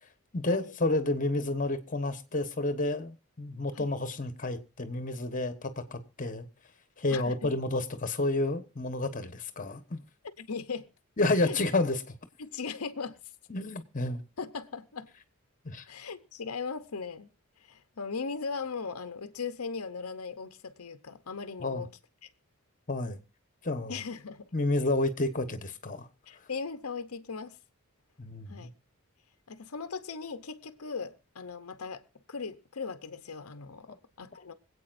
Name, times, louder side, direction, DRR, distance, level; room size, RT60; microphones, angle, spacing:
voice 1, 0.3-6.5 7.0-10.0 11.2-12.2 13.5-14.2 15.6-15.8 21.6-21.9 22.9-23.2 23.6-24.0 24.5-26.1 28.2-28.7 33.9-34.0 34.3-34.5, left 2 dB, 40° left, 1.3 m, -30 dB
voice 2, 7.1-7.5 10.4-10.9 11.4-11.6 12.4-13.1 14.4-15.1 15.9-17.3 17.6-21.9 22.2-22.3 23.9-24.5 26.3-27.6 28.5-28.7 29.5-32.0 32.3-34.5, left 5 dB, 90° left, 0.8 m, -38 dB
25.5 x 8.5 x 2.6 m
head